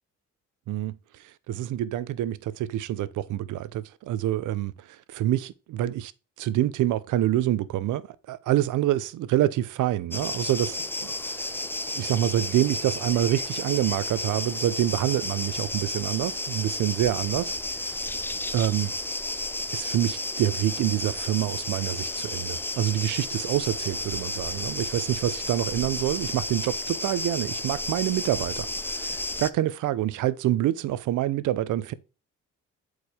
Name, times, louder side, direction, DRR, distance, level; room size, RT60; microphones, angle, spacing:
voice 1, 1.5-4.7 5.1-6.1 6.4-10.8 11.4-11.5 12.0-17.6 17.9-18.0 18.5-18.9 19.7-31.9, right 13 dB, 80° right, 0.7 m, -26 dB
sound 1, 10.1-29.5, left 2 dB, 5° left, 0.5 m, -32 dB
8.1 x 4.9 x 3.4 m
cardioid pair, 90°, 30 cm